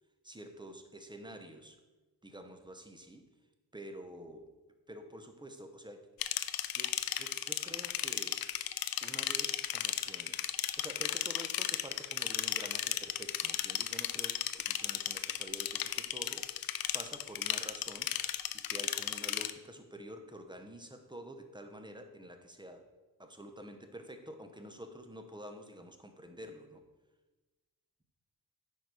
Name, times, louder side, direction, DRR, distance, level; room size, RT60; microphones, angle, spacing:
voice 1, 0.2-1.8 2.2-3.3 3.7-4.5 4.9-6.1 6.7-8.4 9.0-16.6 16.9-22.8 23.2-26.8, equal, 10° right, 6 dB, 0.8 m, -49 dB
sound 1, 6.2-19.5, left 11 dB, 60° left, 0.5 m, -35 dB
9.3 x 4.6 x 4.8 m, 1.2 s
wide cardioid pair, 110°, 39 cm